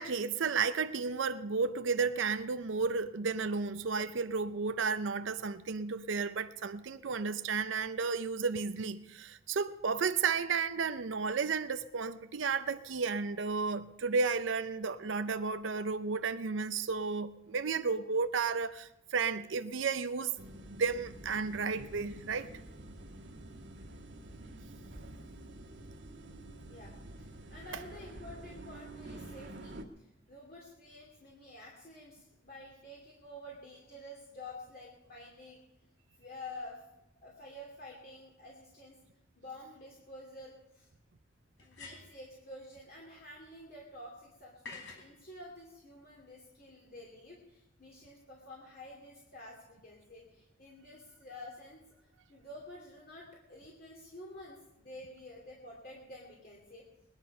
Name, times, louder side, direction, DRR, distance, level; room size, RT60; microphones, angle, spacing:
voice 1, 0.0-20.3 20.7-22.5, right 5 dB, 85° right, 0.6 m, -33 dB
sound 1, 20.4-29.8, right 1 dB, 65° right, 1.5 m, -48 dB
voice 2, 26.5-35.6 36.2-36.8 37.2-39.0 39.4-40.9 41.6-51.8 52.3-56.9, left 1 dB, 55° left, 2.7 m, -50 dB
sound 2, 39.7-39.8 41.6-42.3 44.6-45.1, left 3 dB, 80° left, 3.5 m, -48 dB
20.0 x 10.5 x 5.6 m
head